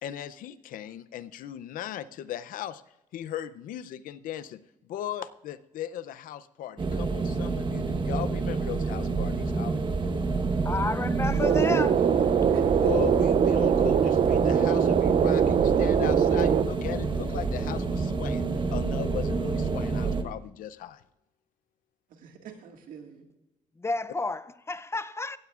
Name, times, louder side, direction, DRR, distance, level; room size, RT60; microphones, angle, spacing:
voice 1, 0.0-2.8 3.1-4.6 4.9-9.8 12.8-21.0, left 11 dB, 90° left, 0.6 m, -37 dB
sound 1, 6.8-20.2, right 4 dB, 35° right, 1.2 m, -28 dB
voice 2, 10.6-12.0 23.8-25.4, left 3 dB, 20° left, 0.5 m, -31 dB
voice 3, 11.3-13.2 22.1-23.3, right 6 dB, 85° right, 1.9 m, -43 dB
sound 2, 11.4-16.6, right 8 dB, 50° right, 0.5 m, -23 dB
16.0 x 15.5 x 2.4 m
cardioid pair, 95°, 14 cm